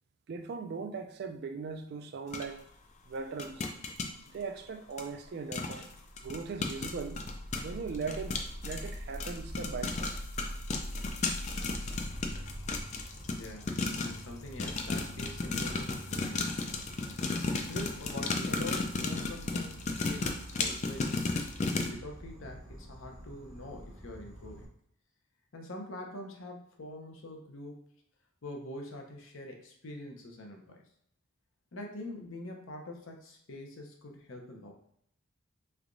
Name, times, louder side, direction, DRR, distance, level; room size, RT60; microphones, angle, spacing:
voice 1, 0.3-2.7 3.1-3.7 4.3-5.9 6.2-7.2 7.6-10.1, right 5 dB, 50° right, 0.3 m, -39 dB
sound 1, 2.3-2.4 3.4-4.1 5.0-5.1 5.5-5.9 6.2-14.3 14.6-21.9, left 3 dB, 35° left, 0.3 m, -34 dB
sound 2, 5.9-12.8, equal, 70° right, 0.7 m, -42 dB
Insect, 11.6-24.6, right 1 dB, 20° right, 0.9 m, -48 dB
voice 2, 13.3-16.8 17.7-21.2 21.7-24.7 25.5-27.9 28.4-30.8 31.7-34.7, left 1 dB, 65° left, 0.7 m, -44 dB
3.4 x 3.3 x 2.5 m
head